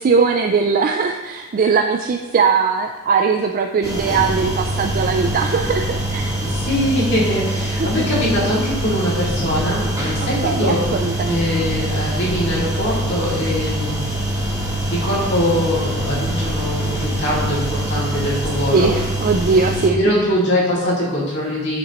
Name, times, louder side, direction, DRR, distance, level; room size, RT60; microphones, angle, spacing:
voice 1, 0.0-6.3 7.8-8.1 10.4-11.4 18.7-20.0, right 5 dB, 40° right, 5 dB, 0.3 m, -19 dB
sound 1, 3.8-19.9, right 1 dB, 15° right, 1.5 m, -24 dB
voice 2, 6.4-10.9 11.3-14.0 14.8-18.9 20.0-21.8, equal, 50° left, -7 dB, 2.4 m, -22 dB
9.0 x 5.1 x 3.0 m, 1.2 s
head